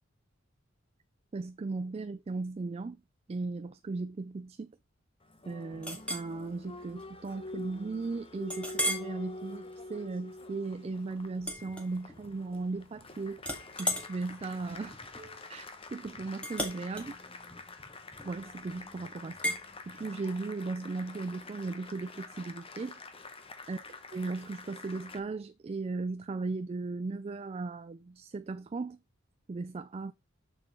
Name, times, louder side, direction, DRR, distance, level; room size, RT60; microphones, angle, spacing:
voice 1, 1.3-3.0 3.3-4.7 5.5-13.4 13.8-15.0 15.5-17.2 18.2-19.6 19.9-23.0 23.7-23.8 24.1-29.0 29.5-30.1, right 3 dB, 30° right, 0.3 m, -37 dB
Applause, 5.2-25.2, left 2 dB, 30° left, 1.1 m, -47 dB
Chink clink, 5.8-6.3 6.8-7.0 7.5-7.6 8.5-9.1 9.7-9.9 11.4-12.4 12.7-13.1 13.4-18.5 19.4-19.6, equal, 5° left, 1.8 m, -36 dB
7.4 x 6.8 x 3.7 m
head